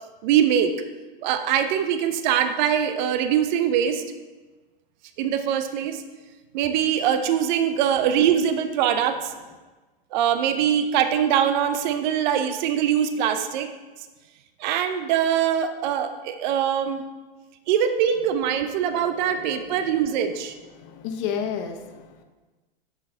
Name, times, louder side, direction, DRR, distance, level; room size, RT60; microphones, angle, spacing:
voice 1, 0.2-0.7 1.2-4.0 5.2-6.0 6.5-9.3 10.1-13.7 14.6-17.0 17.7-20.5, right 9 dB, 50° right, 9 dB, 0.6 m, -22 dB
voice 2, 20.7-22.2, left 7 dB, 40° left, 6 dB, 0.8 m, -31 dB
7.6 x 6.4 x 3.8 m, 1.2 s
hypercardioid pair, 135°, 29 cm